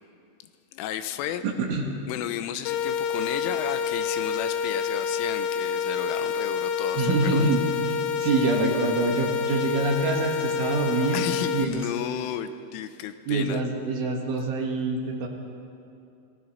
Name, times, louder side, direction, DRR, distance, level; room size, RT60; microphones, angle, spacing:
voice 1, 0.7-1.4 2.1-7.5 11.1-13.6, left 11 dB, 90° left, 10 dB, 3.4 m, -33 dB
voice 2, 1.4-1.9 6.9-11.3 11.5-11.8 13.3-15.3, right 3 dB, 75° right, 0 dB, 4.2 m, -26 dB
sound 1, 2.7-11.7, left 6 dB, 75° left, 2.8 m, -28 dB
26.5 x 19.0 x 5.6 m, 2.6 s
omnidirectional pair, 5.7 m